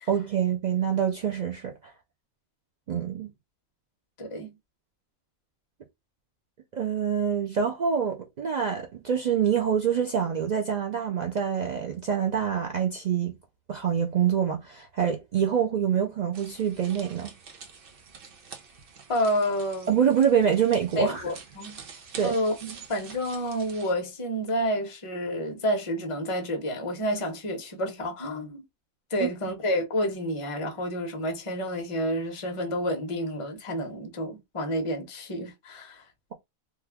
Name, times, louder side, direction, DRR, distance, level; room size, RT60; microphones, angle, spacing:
voice 1, 0.1-1.9 2.9-3.3 6.7-13.4 13.7-17.3 19.9-21.2 22.2-22.4 29.2-29.3, right 8 dB, 75° right, 0.4 m, -26 dB
voice 2, 4.2-4.5 19.1-20.0 21.0-21.8 22.2-28.6 29.1-36.0, equal, 30° left, 0.7 m, -29 dB
sound 1, 16.3-23.9, right 5 dB, 50° right, 0.8 m, -47 dB
3.1 x 2.3 x 3.4 m
omnidirectional pair, 1.4 m